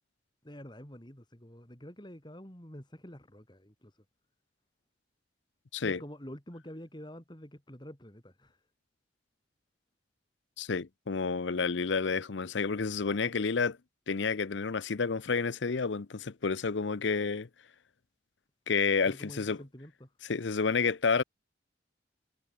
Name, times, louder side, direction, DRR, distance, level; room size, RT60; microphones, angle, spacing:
voice 1, 0.4-4.0 5.8-8.6 19.0-20.1, equal, 25° left, 3.6 m, -48 dB
voice 2, 10.6-13.8 14.1-17.5 18.7-19.6 20.3-21.2, left 5 dB, 75° left, 0.7 m, -30 dB
head